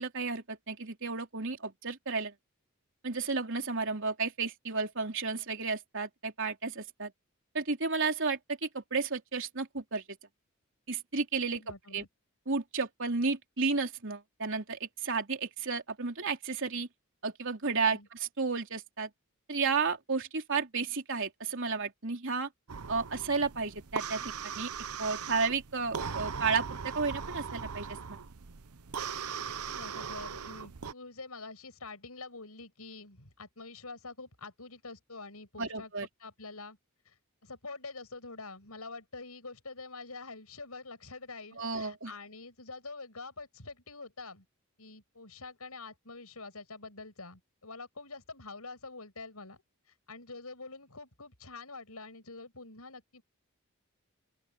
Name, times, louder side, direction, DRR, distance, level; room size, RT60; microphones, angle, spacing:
voice 1, 0.0-2.3 3.0-7.1 7.5-10.0 10.9-11.6 11.9-12.0 12.5-16.9 17.2-19.1 19.5-22.5 22.9-24.7 25.0-28.2 35.6-36.1 41.6-42.1, right 4 dB, 60° right, 3.6 m, -32 dB
voice 2, 11.5-12.1 17.8-18.1 29.7-35.9 36.2-36.8 37.0-37.2 37.4-44.4 44.8-49.6 50.1-53.2, left 3 dB, 90° left, 6.5 m, -46 dB
sound 1, 22.7-30.9, right 6 dB, 85° right, 0.9 m, -39 dB
open air
head